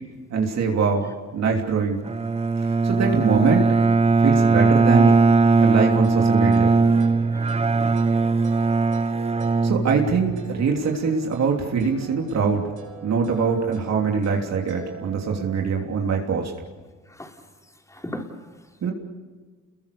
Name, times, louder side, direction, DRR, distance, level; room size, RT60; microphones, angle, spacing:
voice 1, 0.3-2.0 2.8-3.7 4.2-5.1 5.6-6.7 9.6-12.7 13.0-16.5 18.8-18.9, right 5 dB, 60° right, 1 dB, 3.2 m, -23 dB
Bowed string instrument, 2.1-10.5, right 3 dB, 20° right, 0.8 m, -19 dB
voice 2, 4.8-5.2 7.3-7.6 17.1-18.8, left 1 dB, 10° left, 3 dB, 4.0 m, -39 dB
sound 1, 6.0-15.6, right 5 dB, 85° right, 5.3 m, -44 dB
29.0 x 22.0 x 6.9 m, 1.5 s
cardioid pair, 90°, 30 cm